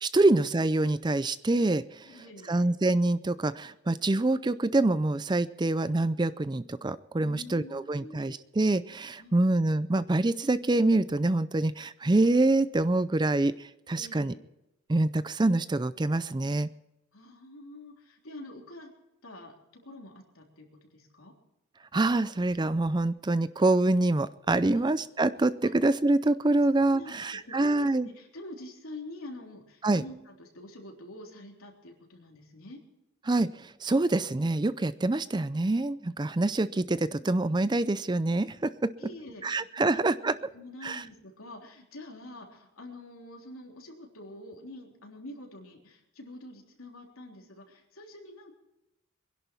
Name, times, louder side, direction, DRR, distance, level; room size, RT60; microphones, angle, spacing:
voice 1, 0.0-2.0 2.5-13.5 13.9-14.3 14.9-16.7 21.9-28.1 29.8-30.0 33.3-38.9 39.4-40.3 40.8-41.0, right 2 dB, 20° right, 15 dB, 0.4 m, -26 dB
voice 2, 2.0-2.7 7.2-8.4 9.2-9.6 14.0-14.4 17.1-18.9 19.2-21.3 24.7-25.0 25.6-25.7 26.9-32.8 36.3-36.4 39.0-48.6, left 1 dB, 85° left, 1 dB, 3.4 m, -46 dB
23.5 x 11.0 x 4.5 m, 0.89 s
head